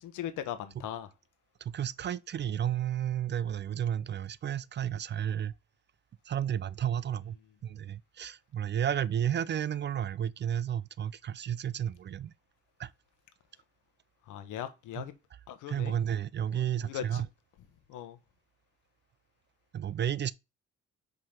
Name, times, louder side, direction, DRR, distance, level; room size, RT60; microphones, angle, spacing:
voice 1, 0.0-1.1 14.3-15.1 15.5-15.9 16.5-17.2 17.9-18.2, left 10 dB, 90° left, 1.1 m, -39 dB
voice 2, 1.6-5.5 6.2-7.4 7.6-12.3 12.8-12.9 15.0-15.1 15.7-17.3 19.7-20.3, right 9 dB, 35° right, 0.4 m, -32 dB
5.3 x 3.8 x 5.8 m
cardioid pair, 90°, 30 cm